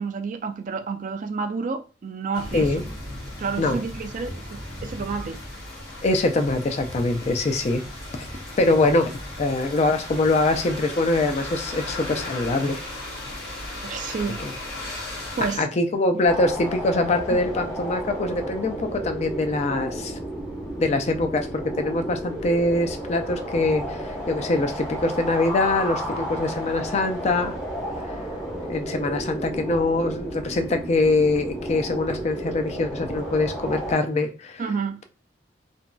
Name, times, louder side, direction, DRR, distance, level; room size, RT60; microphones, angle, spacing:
voice 1, 0.0-2.7 3.4-5.4 13.8-14.4 14.8-15.0 15.4-15.7 34.6-35.0, right 5 dB, 45° right, 0.4 m, -30 dB
sound 1, 2.3-15.6, left 1 dB, 65° left, 1.1 m, -36 dB
voice 2, 6.0-7.8 8.6-9.1 9.4-12.8 13.7-13.8 14.4-14.5 15.6-20.1 20.8-24.0 24.3-27.5 28.7-34.6, left 2 dB, 40° left, 0.4 m, -23 dB
sound 2, 16.3-33.9, equal, 15° left, 0.7 m, -32 dB
2.9 x 2.6 x 2.2 m
head